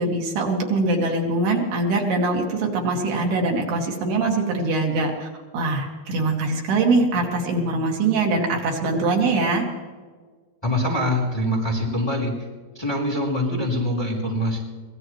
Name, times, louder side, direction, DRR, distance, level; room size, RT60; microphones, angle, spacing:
voice 1, 0.0-5.3 5.5-9.7, right 3 dB, 80° right, 1 dB, 4.1 m, -22 dB
voice 2, 10.6-12.3 12.7-14.6, left 1 dB, 5° left, -3 dB, 3.3 m, -24 dB
23.5 x 18.0 x 3.2 m, 1.5 s
omnidirectional pair, 4.5 m